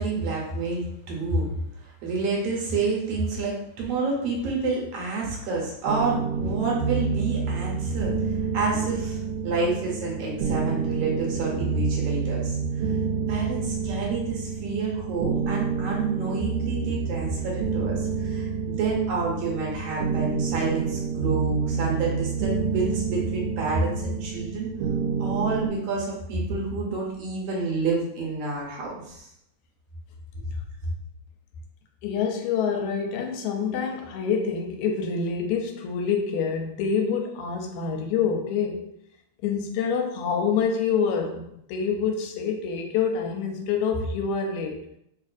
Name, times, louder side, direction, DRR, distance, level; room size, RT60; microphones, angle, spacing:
voice 1, 0.0-1.5 1.8-8.1 8.5-12.6 13.3-24.7 25.2-29.3, right 3 dB, 70° right, -3 dB, 1.7 m, -28 dB
sound 1, 5.9-25.7, right 5 dB, 85° right, 1.9 m, -28 dB
voice 2, 32.0-38.9 39.4-44.8, left 6 dB, 85° left, 3 dB, 1.9 m, -26 dB
4.4 x 2.5 x 2.4 m, 0.75 s
omnidirectional pair, 3.3 m